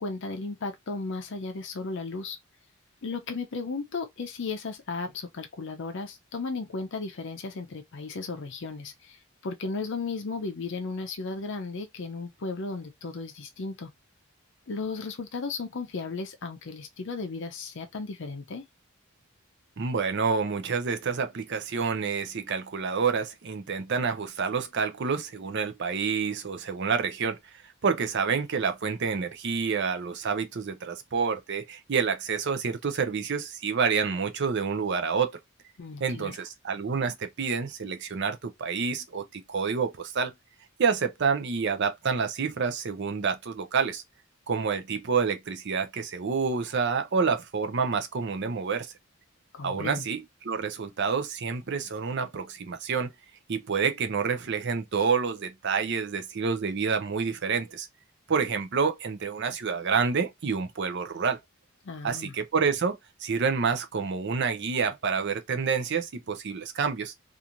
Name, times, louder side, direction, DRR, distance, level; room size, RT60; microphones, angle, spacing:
voice 1, 0.0-2.4 3.0-13.9 14.7-18.6 35.8-36.4 49.5-50.1 61.8-62.4, left 4 dB, 60° left, 0.5 m, -35 dB
voice 2, 19.8-27.4 27.8-35.3 36.0-40.3 40.8-44.0 44.5-48.9 49.6-53.1 53.5-57.9 58.3-61.4 62.0-67.1, right 5 dB, 55° right, 0.5 m, -28 dB
2.9 x 2.5 x 2.5 m
head